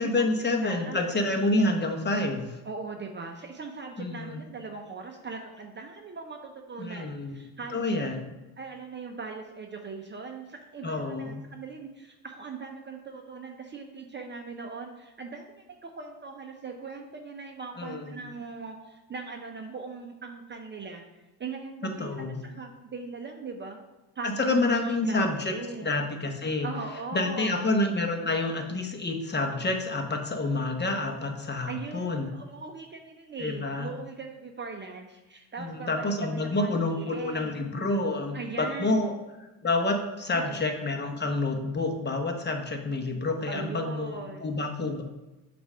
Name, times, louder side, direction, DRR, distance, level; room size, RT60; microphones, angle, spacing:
voice 1, 0.0-2.6 4.0-4.4 6.8-7.4 7.7-8.4 10.8-11.4 17.8-18.2 21.8-22.4 24.2-25.6 25.8-26.7 27.1-32.3 33.4-33.9 35.6-39.1 39.6-45.0, left 2 dB, 25° left, 4 dB, 0.9 m, -28 dB
voice 2, 0.6-1.0 2.6-7.8 8.6-23.8 24.2-25.9 26.6-27.7 31.7-37.6 38.3-39.1 40.3-40.6 43.5-44.5, right 4 dB, 25° right, 3 dB, 0.6 m, -40 dB
6.7 x 2.6 x 5.4 m, 1.0 s
supercardioid pair, 75°, 45 cm